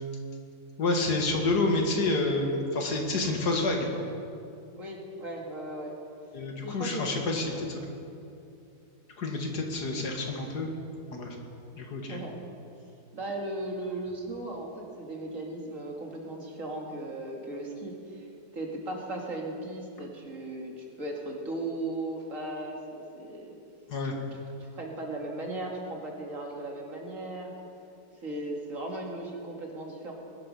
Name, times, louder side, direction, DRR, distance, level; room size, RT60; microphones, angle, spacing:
voice 1, 0.8-3.9 6.3-7.8 9.2-10.7 11.1-11.4 11.8-12.2 23.9-24.1, left 2 dB, 80° left, 2 dB, 2.3 m, -28 dB
voice 2, 4.8-5.9 6.6-7.6 12.1-12.4 13.1-18.3 18.5-23.6 24.6-27.5 28.2-30.1, right 2 dB, 55° right, -1 dB, 2.6 m, -37 dB
20.5 x 12.0 x 5.5 m, 2.6 s
omnidirectional pair, 1.7 m